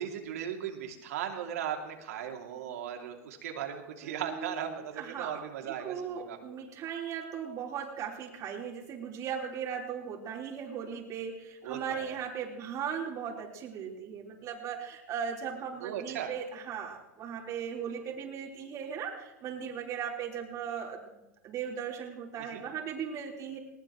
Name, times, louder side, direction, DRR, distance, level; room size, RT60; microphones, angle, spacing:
voice 1, 0.0-6.4 11.6-12.2 15.8-16.3 22.5-22.6, right 9 dB, 80° right, 3 dB, 2.7 m, -37 dB
voice 2, 4.0-21.0 21.4-23.6, right 7 dB, 40° right, -1 dB, 3.9 m, -38 dB
20.0 x 19.5 x 3.1 m, 0.97 s
hypercardioid pair, 105°, 8 cm